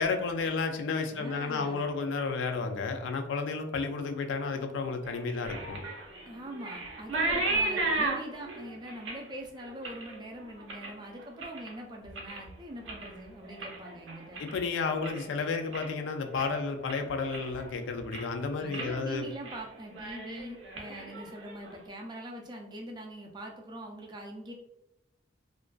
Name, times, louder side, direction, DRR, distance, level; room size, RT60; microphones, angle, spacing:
voice 1, 0.0-5.8 14.4-19.2, left 4 dB, 80° left, 5 dB, 0.3 m, -32 dB
voice 2, 1.1-1.8 6.2-14.4 18.6-24.5, right 1 dB, 20° right, 1 dB, 0.3 m, -43 dB
sound 1, 5.0-11.7 12.0-12.5 12.8-15.3 15.6-16.0 16.4-16.5 16.9-17.7 18.0-18.4 18.7-18.9 19.3-19.6 19.9-21.7, right 2 dB, 85° right, 0.5 m, -35 dB
2.5 x 2.2 x 2.2 m, 0.87 s
head